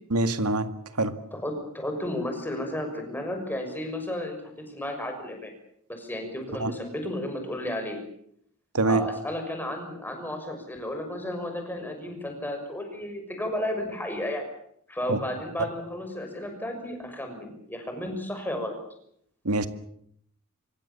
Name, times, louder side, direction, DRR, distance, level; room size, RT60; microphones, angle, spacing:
voice 1, 0.1-0.7 1.0-1.1 6.6-6.7 8.7-9.0 15.1-15.2 19.5-19.7, right 2 dB, 90° right, 9 dB, 2.0 m, -24 dB
voice 2, 1.3-5.5 5.9-8.0 8.8-14.4 14.9-18.8, left 1 dB, 10° left, 4 dB, 6.4 m, -33 dB
26.0 x 24.0 x 7.2 m, 0.70 s
head